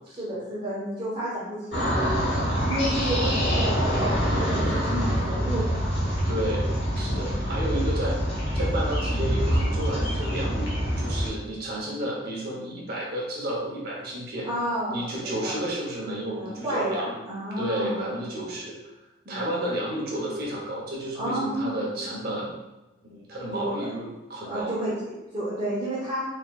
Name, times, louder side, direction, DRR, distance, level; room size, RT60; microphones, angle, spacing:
voice 1, 0.2-5.9 7.0-7.3 14.4-15.6 16.3-18.0 19.2-19.5 21.2-21.9 23.5-23.9 24.4-26.2, right 1 dB, 25° right, -10 dB, 1.0 m, -31 dB
sound 1, 1.7-11.3, equal, 50° left, 1.3 m, -25 dB
voice 2, 6.3-8.2 8.5-14.5 14.9-17.1 17.6-18.8 19.3-22.5 23.1-24.7, right 1 dB, 50° right, -3 dB, 0.9 m, -31 dB
4.4 x 3.7 x 2.3 m, 1.0 s
head